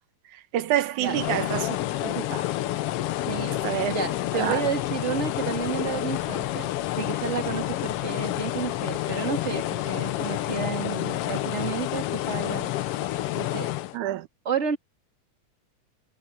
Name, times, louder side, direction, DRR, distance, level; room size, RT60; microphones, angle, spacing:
voice 1, 0.3-1.8 2.0-2.5 3.6-3.9 4.3-4.6 13.9-14.3, right 13 dB, 85° right, 2.4 m, -27 dB
sound 1, 1.0-14.0, left 14 dB, 75° left, 1.4 m, -29 dB
voice 2, 3.3-3.6 3.9-6.7 6.9-12.7 13.4-13.7 14.4-14.8, right 6 dB, 25° right, 2.7 m, -31 dB
omnidirectional pair, 3.4 m